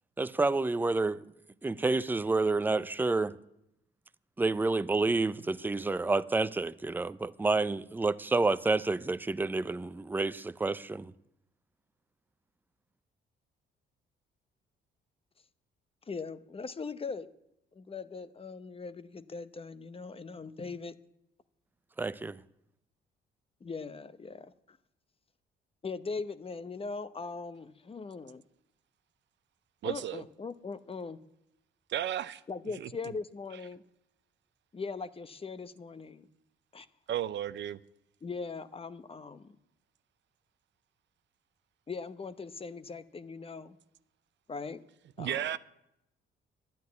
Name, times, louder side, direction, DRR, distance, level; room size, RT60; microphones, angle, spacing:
voice 1, 0.2-1.2 1.6-3.3 4.4-11.1 22.0-22.4, right 3 dB, 10° right, 0.5 m, -29 dB
voice 2, 16.1-17.3 17.7-21.0 23.6-24.8 25.8-28.4 29.8-31.2 32.5-33.8 34.7-36.2 36.7-36.9 38.2-39.6 41.9-43.8 44.5-44.8 45.2-45.4, left 4 dB, 30° left, 0.8 m, -40 dB
voice 3, 29.8-30.2 31.9-32.4 32.8-32.9 37.1-37.8 45.2-45.6, right 11 dB, 65° right, 0.6 m, -33 dB
12.0 x 9.9 x 9.4 m
cardioid pair, 90°, 20 cm